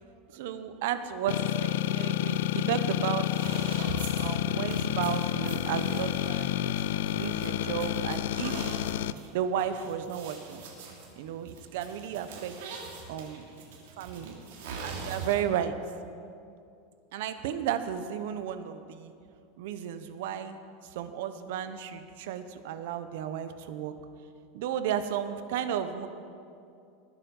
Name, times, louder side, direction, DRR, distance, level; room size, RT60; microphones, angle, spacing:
voice 1, 0.3-3.5 4.2-6.6 7.1-8.7 9.3-10.6 11.2-12.8 13.1-13.7 14.0-14.4 14.8-15.8 17.1-19.1 19.6-23.9 24.5-26.1, right 9 dB, 65° right, 10 dB, 1.0 m, -33 dB
sound 1, 1.3-9.1, left 13 dB, 75° left, 0.4 m, -29 dB
sound 2, 3.2-15.6, right 4 dB, 80° right, 3.2 m, -43 dB
20.0 x 9.4 x 5.5 m, 2.5 s
supercardioid pair, 165°, 0 cm